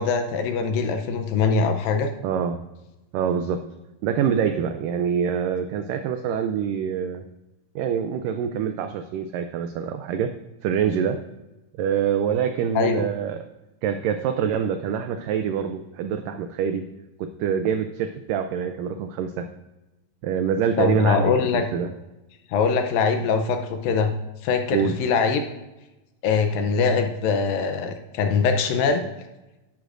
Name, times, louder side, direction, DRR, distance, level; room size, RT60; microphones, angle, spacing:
voice 1, 0.0-2.1 12.8-13.1 20.8-21.6 22.5-24.1 24.4-25.4 26.2-29.1, left 5 dB, 75° left, 6 dB, 2.2 m, -22 dB
voice 2, 2.2-2.6 3.1-3.6 4.0-7.2 7.8-10.3 10.6-11.2 11.8-13.4 13.8-16.9 17.2-19.5 20.2-21.9 24.7-25.0, right 8 dB, 90° right, 7 dB, 1.9 m, -25 dB
11.5 x 11.5 x 2.5 m, 1.0 s
omnidirectional pair, 4.5 m